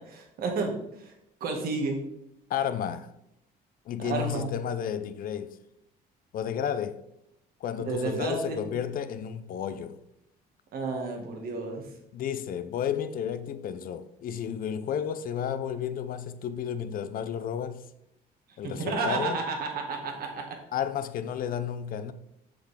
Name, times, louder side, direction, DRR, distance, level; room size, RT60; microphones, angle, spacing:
voice 1, 0.1-1.1 1.4-2.0 4.0-4.5 7.9-8.7 10.7-11.9 18.6-20.6, right 4 dB, 65° right, 2.2 m, -31 dB
voice 2, 2.5-3.1 3.9-5.6 6.3-7.0 7.6-10.0 12.1-17.9 18.6-19.4 20.7-22.1, left 8 dB, 55° left, 0.7 m, -32 dB
7.2 x 7.0 x 3.8 m
cardioid pair, 110°, 17 cm